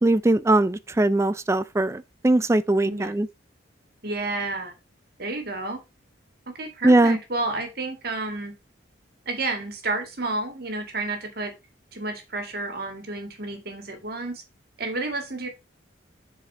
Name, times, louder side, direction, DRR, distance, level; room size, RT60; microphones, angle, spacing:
voice 1, 0.0-3.3 6.8-7.2, right 2 dB, 15° right, 0.3 m, -20 dB
voice 2, 4.0-4.7 5.2-5.8 6.5-8.5 9.3-11.5 11.9-14.4 14.8-15.5, right 2 dB, 50° right, 2.0 m, -30 dB
7.7 x 4.8 x 4.5 m
head